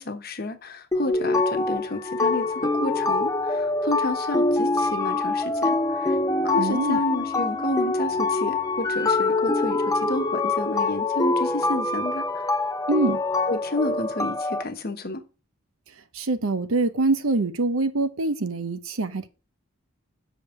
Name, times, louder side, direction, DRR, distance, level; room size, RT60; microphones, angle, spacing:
voice 1, 0.0-6.1 6.4-12.5 13.5-15.2, left 1 dB, 45° left, 1.1 m, -31 dB
sound 1, 0.9-14.6, left 3 dB, 15° left, 0.5 m, -24 dB
voice 2, 6.6-7.0 12.9-13.2 16.1-19.3, right 2 dB, 80° right, 0.9 m, -24 dB
6.6 x 5.2 x 6.4 m
head